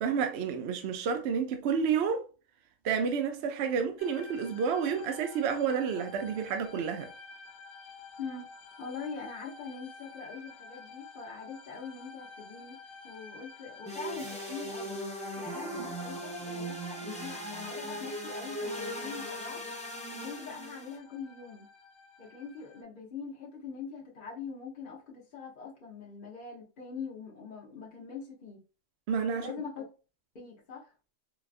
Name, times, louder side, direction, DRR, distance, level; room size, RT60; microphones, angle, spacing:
voice 1, 0.0-2.3 2.8-7.1 15.8-15.9 29.1-29.5, right 6 dB, 65° right, 0.7 m, -30 dB
sound 1, 4.0-22.8, left 4 dB, 75° left, 1.0 m, -51 dB
voice 2, 8.2-8.5 8.8-15.0 15.4-19.6 20.1-21.7 22.2-28.6 29.3-29.8 30.3-30.9, left 5 dB, 45° left, 0.9 m, -43 dB
sound 2, 13.9-21.0, equal, 10° left, 0.3 m, -39 dB
sound 3, 14.1-16.8, right 2 dB, 85° right, 2.2 m, -55 dB
3.9 x 2.4 x 2.4 m
omnidirectional pair, 1.4 m